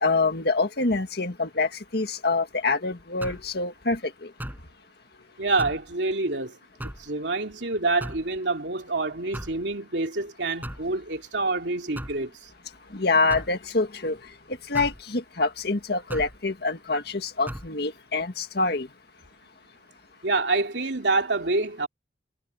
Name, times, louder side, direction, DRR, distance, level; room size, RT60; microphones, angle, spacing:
voice 1, 0.0-4.3 12.9-14.2 14.7-18.9, left 3 dB, 65° left, 1.8 m, -26 dB
sound 1, 3.2-3.5 4.4-4.7 5.6-5.9 6.8-7.1 8.0-8.3 9.3-9.6 10.6-10.9 12.0-12.2 13.3-13.6 14.7-15.0 16.1-16.4 17.5-17.7, equal, 10° right, 6.6 m, -36 dB
voice 2, 5.4-6.6 7.0-12.3 20.2-21.9, right 3 dB, 90° right, 2.9 m, -27 dB
head